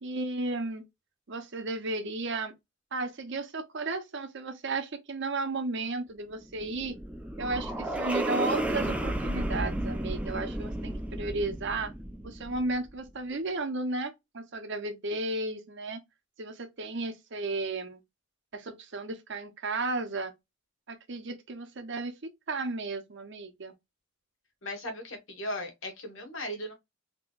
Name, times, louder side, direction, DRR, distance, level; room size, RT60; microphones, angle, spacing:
voice 1, 0.0-0.8 1.3-2.5 2.9-7.0 7.4-11.9 12.2-16.0 16.4-18.0 18.5-20.3 20.9-22.1 22.5-23.7, right 2 dB, 60° right, 0.8 m, -34 dB
sound 1, 6.4-12.9, right 1 dB, 5° right, 0.5 m, -33 dB
voice 2, 24.6-26.7, left 1 dB, 70° left, 1.5 m, -37 dB
3.7 x 2.9 x 2.4 m
head